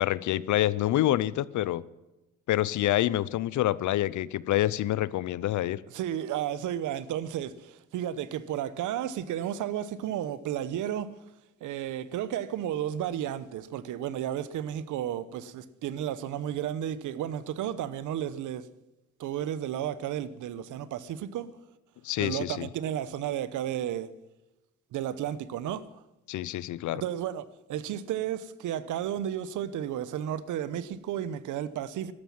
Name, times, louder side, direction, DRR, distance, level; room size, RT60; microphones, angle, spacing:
voice 1, 0.0-1.8 2.5-5.8 22.0-22.7 26.3-27.0, left 14 dB, 75° left, 0.7 m, -27 dB
voice 2, 5.9-11.1 11.6-18.6 19.2-21.5 22.2-24.1 24.9-26.0 26.9-27.4 27.7-32.1, right 10 dB, 80° right, 1.0 m, -33 dB
13.5 x 12.0 x 7.3 m
cardioid pair, 90°, 30 cm